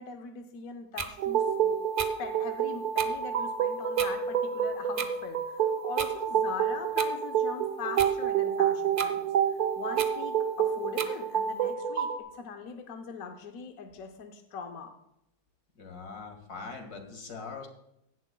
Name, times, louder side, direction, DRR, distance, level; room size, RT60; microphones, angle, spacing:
voice 1, 0.0-1.7 2.0-14.9, left 5 dB, 70° left, 5 dB, 1.2 m, -42 dB
sound 1, 1.0-1.1 2.0-2.1 3.0-3.1 4.0-4.1 5.0-5.1 6.0-6.1 7.0-7.1 8.0-8.1 9.0-9.1 10.0-10.1 11.0-11.1, right 5 dB, 35° right, 0.5 m, -33 dB
sound 2, 1.2-12.2, right 8 dB, 90° right, 1.5 m, -28 dB
voice 2, 15.8-17.7, left 4 dB, 90° left, 4 dB, 2.3 m, -42 dB
16.0 x 11.0 x 2.2 m, 0.81 s
omnidirectional pair, 1.6 m